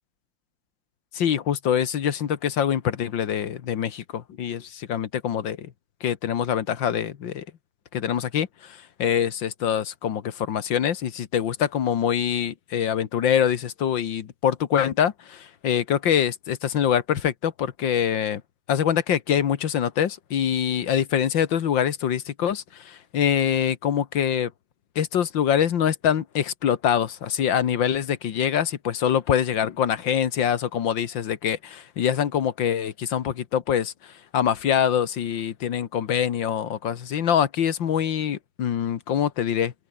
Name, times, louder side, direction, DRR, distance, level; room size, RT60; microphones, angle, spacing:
voice 1, 1.1-5.7 6.0-7.5 7.9-18.4 18.7-24.5 25.0-39.7, left 9 dB, 75° left, 2.0 m, -24 dB
open air
omnidirectional pair, 2.1 m